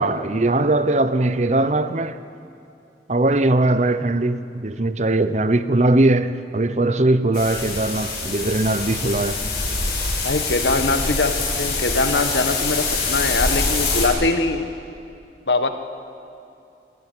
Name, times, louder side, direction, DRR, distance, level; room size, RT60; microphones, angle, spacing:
voice 1, 0.0-2.2 3.1-9.4, right 2 dB, 40° right, 0.8 m, -20 dB
sound 1, 7.3-14.1, left 3 dB, 60° left, 6.8 m, -24 dB
voice 2, 10.2-14.7 15.5-15.7, left 3 dB, 75° left, 1.5 m, -22 dB
26.0 x 14.5 x 9.2 m
head